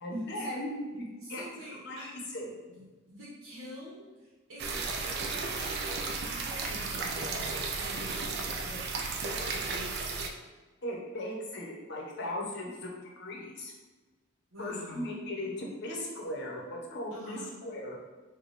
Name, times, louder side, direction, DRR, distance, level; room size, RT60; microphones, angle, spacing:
voice 1, 0.0-2.5 10.8-13.7 14.6-18.0, left 1 dB, 55° left, -1 dB, 0.7 m, -38 dB
voice 2, 1.2-2.1 2.7-8.3 8.6-8.9 9.3-10.3 14.5-15.1 17.1-17.5, equal, 80° right, -7 dB, 1.0 m, -46 dB
sound 1, 4.6-10.3, right 4 dB, 50° right, 0.4 m, -34 dB
3.2 x 2.3 x 4.0 m, 1.3 s
head